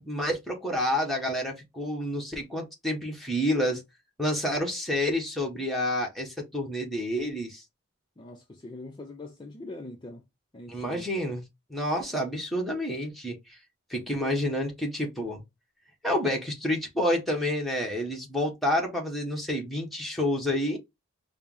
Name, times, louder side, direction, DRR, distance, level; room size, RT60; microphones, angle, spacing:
voice 1, 0.0-3.8 4.2-7.6 10.7-11.4 11.7-13.4 13.9-15.4 16.0-20.8, left 1 dB, ahead, 1.0 m, -29 dB
voice 2, 8.2-10.2 10.5-11.1, left 2 dB, 20° left, 0.4 m, -43 dB
4.3 x 2.0 x 3.7 m
head